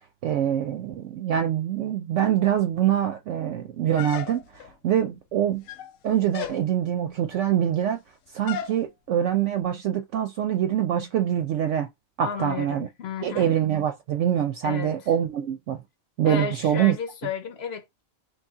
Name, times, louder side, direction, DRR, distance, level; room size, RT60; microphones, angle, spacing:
voice 1, 0.2-5.6 6.0-8.0 8.3-11.9 12.2-12.9 13.2-15.8 16.2-17.0, right 10 dB, 70° right, 0.8 m, -24 dB
sound 1, 4.0-4.7 5.5-6.0 6.3-6.6 8.5-8.8, left 10 dB, 80° left, 1.0 m, -34 dB
voice 2, 12.2-13.6 14.6-15.0 16.3-18.0, left 6 dB, 55° left, 1.0 m, -33 dB
3.1 x 2.7 x 3.6 m
omnidirectional pair, 1.4 m